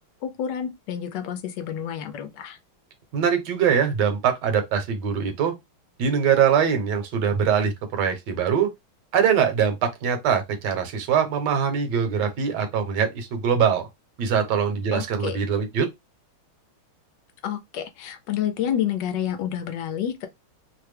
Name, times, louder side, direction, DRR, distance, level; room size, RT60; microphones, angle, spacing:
voice 1, 0.2-2.6 14.9-15.4 17.4-20.3, left 9 dB, 70° left, 1.1 m, -29 dB
voice 2, 3.1-5.5 6.0-8.7 9.1-13.9 14.2-15.9, right 7 dB, 65° right, 1.3 m, -22 dB
3.3 x 2.1 x 3.2 m
omnidirectional pair, 2.3 m